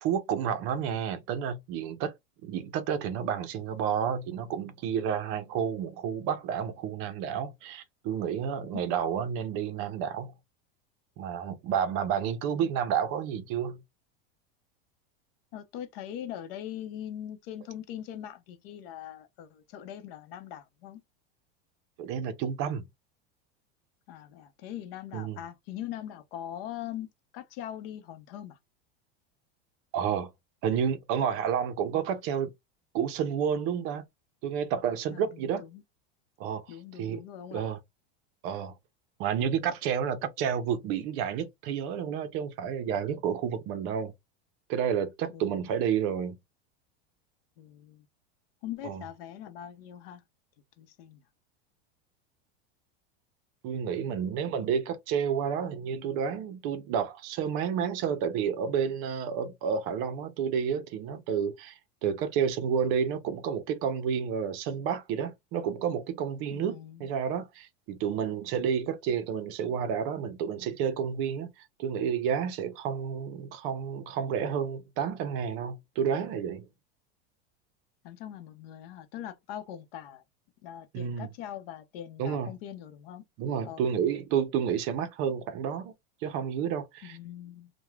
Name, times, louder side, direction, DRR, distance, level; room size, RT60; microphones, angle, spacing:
voice 1, 0.0-2.1 2.4-10.3 11.2-13.8 22.0-22.8 25.1-25.4 29.9-30.3 30.6-32.5 32.9-34.0 34.4-35.6 36.4-37.2 37.5-37.8 38.4-38.7 39.2-44.1 44.7-46.4 48.8-49.0 53.6-76.7 80.9-81.3 82.2-82.5 83.4-85.9 86.2-87.2, right 8 dB, 45° right, 0.5 m, -30 dB
voice 2, 15.5-21.0 24.1-27.1 27.3-28.6 35.1-35.8 36.7-37.7 45.3-45.8 47.6-48.1 48.6-50.2 50.8-51.2 66.5-67.1 78.0-80.2 80.6-83.2 83.6-84.1 87.0-87.7, left 11 dB, 70° left, 0.7 m, -41 dB
3.1 x 2.1 x 2.2 m
supercardioid pair, 140°, 31 cm